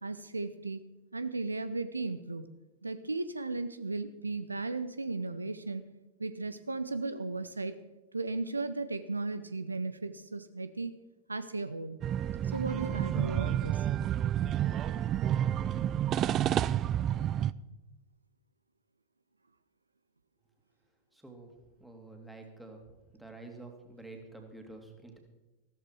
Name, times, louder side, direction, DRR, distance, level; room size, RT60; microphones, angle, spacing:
voice 1, 0.0-0.8 1.1-2.4 2.8-5.9 6.2-7.8 8.1-10.9 11.3-12.0 12.5-13.8, right 3 dB, 80° right, 13 dB, 0.6 m, -35 dB
sound 1, 12.0-17.5, right 11 dB, 30° right, 0.4 m, -30 dB
voice 2, 21.1-21.5 21.8-22.8 23.1-25.2, right 2 dB, 5° right, 3 dB, 2.5 m, -48 dB
14.5 x 13.5 x 4.6 m, 1.1 s
figure-of-eight pair, 90°, 0 cm